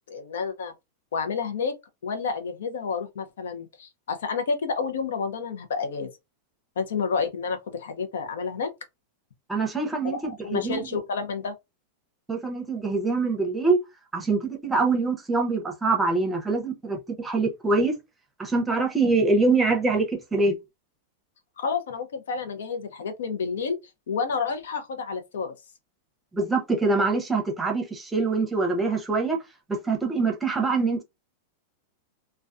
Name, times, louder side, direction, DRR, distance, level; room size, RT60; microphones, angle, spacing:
voice 1, 0.1-0.7 1.1-1.7 2.0-6.1 6.8-8.7 10.0-11.5 21.6-23.8 24.1-25.5, left 5 dB, 90° left, 0.6 m, -30 dB
voice 2, 9.5-10.8 12.3-13.8 14.1-17.9 18.4-20.6 26.3-29.4 29.7-31.0, right 3 dB, 10° right, 0.6 m, -24 dB
2.3 x 2.2 x 2.5 m
supercardioid pair, 140°, 0 cm